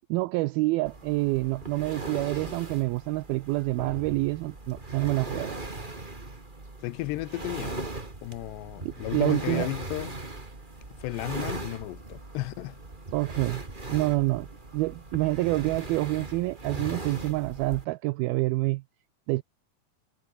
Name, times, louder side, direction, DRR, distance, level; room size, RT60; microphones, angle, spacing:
voice 1, 0.1-5.6 8.8-9.7 13.1-13.6 13.9-14.5 14.7-18.8 19.3-19.4, right 21 dB, 80° right, 2.2 m, -27 dB
sound 1, 0.8-17.8, right 2 dB, 15° right, 2.3 m, -39 dB
voice 2, 6.8-7.9 8.2-10.2 11.0-12.8, left 18 dB, 90° left, 3.1 m, -34 dB
omnidirectional pair, 4.8 m